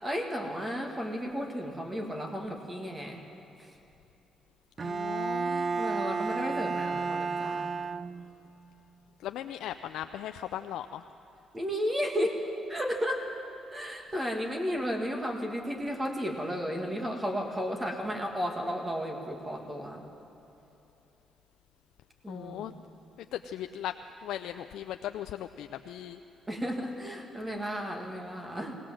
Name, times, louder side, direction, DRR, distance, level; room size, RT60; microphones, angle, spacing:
voice 1, 0.0-3.2 3.6-3.7 5.5-7.8 11.5-12.4 12.7-13.3 13.7-20.0 22.2-22.8 26.5-28.8, equal, 20° right, 2 dB, 2.2 m, -33 dB
voice 2, 4.8-6.0 9.2-11.1 14.2-14.3 22.3-22.7 23.3-23.9 24.2-26.2, left 11 dB, 85° left, 8 dB, 0.4 m, -38 dB
Bowed string instrument, 4.8-8.5, right 4 dB, 40° right, 0.5 m, -32 dB
20.5 x 17.5 x 7.6 m, 3.0 s
cardioid pair, 90°, 0 cm